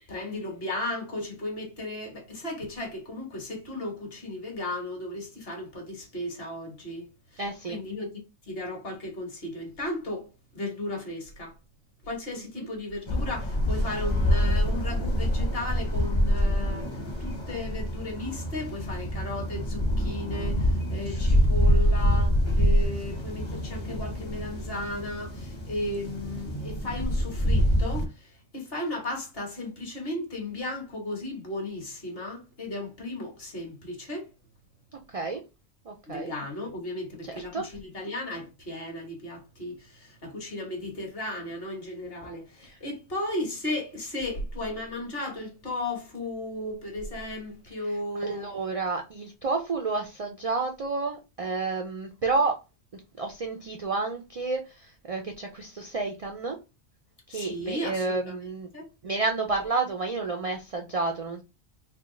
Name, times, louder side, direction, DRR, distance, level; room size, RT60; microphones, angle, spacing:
voice 1, 0.1-7.4 7.7-11.5 12.0-34.3 36.1-48.5 57.3-58.4 58.7-58.9, left 1 dB, 50° left, 1.4 m, -35 dB
voice 2, 7.4-7.8 12.6-12.7 34.9-35.4 35.9-36.3 37.2-37.7 42.6-42.7 48.2-52.6 52.9-56.6 57.3-58.7 59.0-61.4, right 3 dB, 65° right, 0.3 m, -30 dB
sound 1, 13.1-28.1, equal, 30° left, 0.7 m, -26 dB
3.4 x 2.2 x 3.7 m
omnidirectional pair, 1.3 m